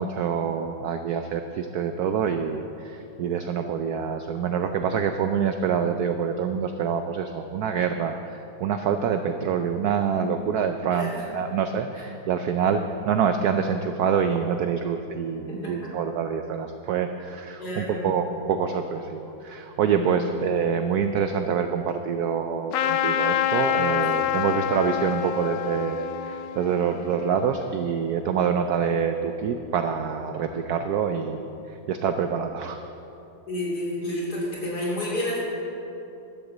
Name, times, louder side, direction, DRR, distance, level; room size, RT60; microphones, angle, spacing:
voice 1, 0.0-32.8, right 7 dB, 80° right, 7 dB, 0.8 m, -26 dB
voice 2, 10.9-11.2 15.5-15.9 17.6-18.1 19.9-20.3 33.5-35.4, left 1 dB, 50° left, -5 dB, 3.5 m, -30 dB
Trumpet, 22.7-27.8, left 11 dB, 75° left, 1.1 m, -27 dB
11.5 x 8.0 x 7.2 m, 2.9 s
omnidirectional pair, 2.2 m